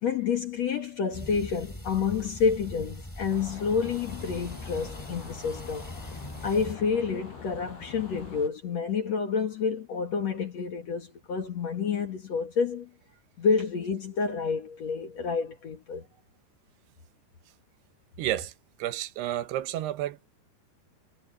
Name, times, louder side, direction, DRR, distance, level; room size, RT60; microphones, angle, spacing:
voice 1, 0.0-5.9 6.4-12.9 13.4-16.0, left 6 dB, 50° left, 2.3 m, -29 dB
sound 1, 1.1-6.8, left 1 dB, 5° left, 2.4 m, -42 dB
sound 2, 3.3-8.5, left 5 dB, 70° left, 6.5 m, -44 dB
voice 2, 18.2-18.5 18.8-20.3, right 13 dB, 75° right, 2.8 m, -31 dB
omnidirectional pair, 4.9 m